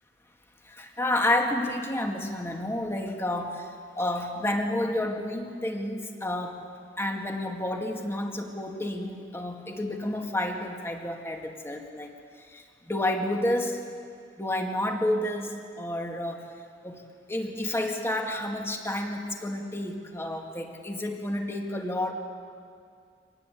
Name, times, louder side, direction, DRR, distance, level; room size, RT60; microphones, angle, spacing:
voice 1, 0.7-3.7 4.0-6.7 7.0-12.1 12.5-13.8 14.4-16.4 16.8-17.0 17.3-22.1, left 1 dB, 15° left, 2 dB, 2.1 m, -30 dB
25.0 x 19.0 x 8.5 m, 2.2 s
head